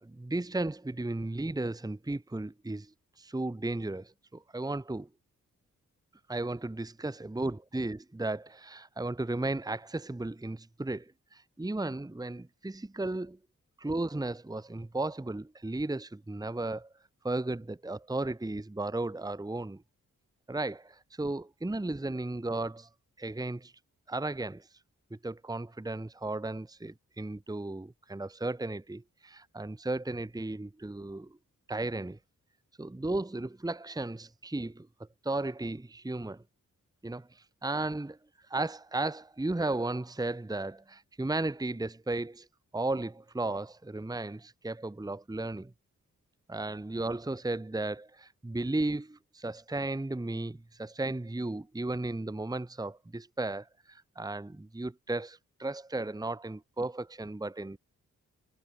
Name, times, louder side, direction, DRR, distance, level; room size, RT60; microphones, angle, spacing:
voice 1, 0.0-2.9 3.2-5.1 6.3-13.4 13.8-16.9 17.2-19.8 20.5-22.9 23.2-23.7 24.1-24.7 25.1-31.4 31.7-32.2 32.8-36.4 37.0-38.2 38.5-42.5 42.7-45.7 46.5-57.8, right 2 dB, 10° right, 1.1 m, -35 dB
cardioid pair, 45°, 33 cm